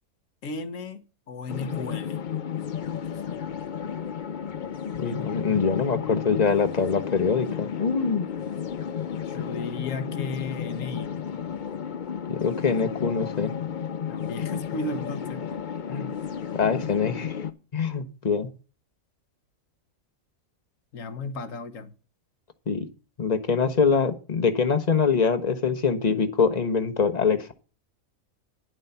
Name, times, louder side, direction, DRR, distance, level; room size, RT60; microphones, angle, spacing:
voice 1, 0.4-2.2 4.9-5.7 9.3-11.2 14.1-15.4 20.9-21.9, left 3 dB, 70° left, 1.5 m, -35 dB
sound 1, 1.5-17.5, left 8 dB, 50° left, 0.6 m, -33 dB
voice 2, 4.9-8.2 12.3-13.5 15.9-16.1 16.5-17.3 17.7-18.5 22.7-22.9 23.2-27.5, left 5 dB, 30° left, 1.1 m, -24 dB
10.5 x 7.7 x 5.7 m
omnidirectional pair, 1.4 m